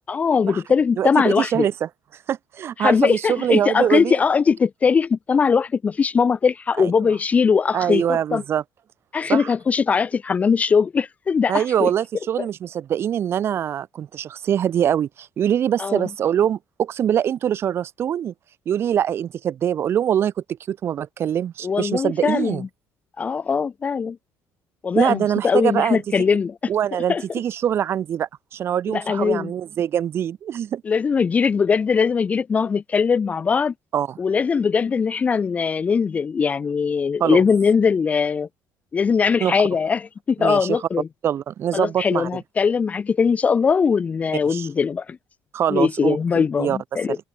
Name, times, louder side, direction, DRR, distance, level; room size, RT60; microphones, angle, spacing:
voice 1, 0.1-1.7 2.8-8.4 9.1-11.9 12.4-12.5 15.8-16.1 21.6-22.7 23.2-24.2 24.8-26.6 27.1-27.2 28.9-29.5 30.8-33.7 34.2-38.5 38.9-41.1 41.7-45.2 45.7-47.2, left 5 dB, 20° left, 0.6 m, -20 dB
voice 2, 1.0-1.9 2.3-4.2 6.8-6.9 7.7-8.6 9.3-9.5 11.5-18.3 18.7-20.3 20.7-22.6 25.0-26.0 26.7-30.8 33.9-34.2 37.2-37.4 39.4-39.5 40.4-40.8 41.2-42.3 44.5-44.7 45.5-46.8 47.1-47.2, right 9 dB, 40° right, 3.8 m, -23 dB
cardioid pair, 170°, 6 cm